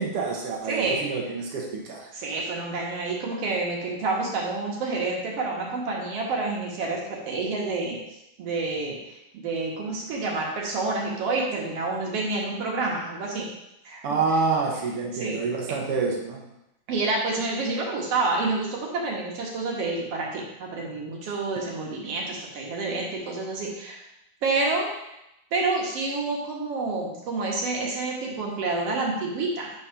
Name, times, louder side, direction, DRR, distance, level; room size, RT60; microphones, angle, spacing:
voice 1, 0.0-2.1 14.0-16.4, right 4 dB, 80° right, -1 dB, 1.2 m, -27 dB
voice 2, 0.7-1.1 2.1-8.0 8.4-13.5 13.9-14.1 15.1-15.4 16.9-24.0 24.4-24.9 25.5-29.7, right 3 dB, 55° right, -2 dB, 1.9 m, -28 dB
6.4 x 4.2 x 5.6 m, 0.86 s
omnidirectional pair, 4.0 m